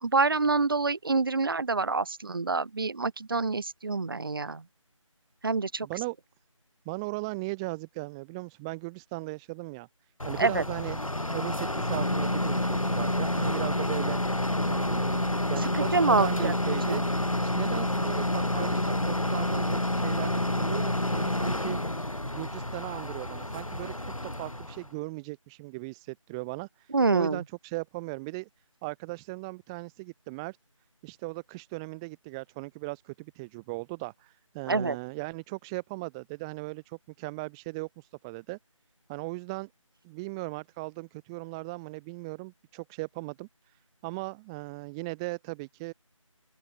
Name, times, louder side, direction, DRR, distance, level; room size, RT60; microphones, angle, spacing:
voice 1, 0.0-4.6 5.4-5.9 10.4-10.6 15.9-16.5 16.9-17.0 26.9-27.4 34.7-35.0, right 3 dB, 40° right, 5.2 m, -26 dB
voice 2, 5.8-6.2 6.8-9.9 10.2-11.0 11.3-14.2 14.6-17.0 17.4-21.8 22.3-23.9 24.2-26.7 27.1-28.5 28.8-30.6 31.0-38.6 39.1-39.7 40.0-43.5 44.0-45.9, right 26 dB, 10° right, 2.7 m, -38 dB
Garbage truck compacting garbage, 10.2-24.9, left 1 dB, 85° left, 7.7 m, -29 dB
open air
figure-of-eight pair, 165°, 17 cm